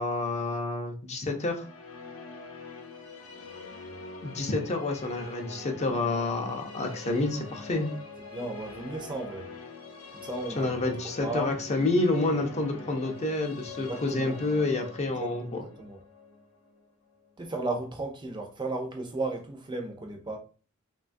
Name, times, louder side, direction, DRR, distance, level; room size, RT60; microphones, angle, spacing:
voice 1, 0.0-1.6 4.2-7.9 10.6-15.6, left 2 dB, 35° left, 0.5 m, -29 dB
sound 1, 1.3-17.4, left 3 dB, 80° left, 0.7 m, -44 dB
voice 2, 8.3-9.5 10.2-11.9 13.8-14.4 15.2-16.0 17.4-20.4, right 2 dB, 20° right, 0.4 m, -35 dB
3.0 x 2.2 x 2.5 m
head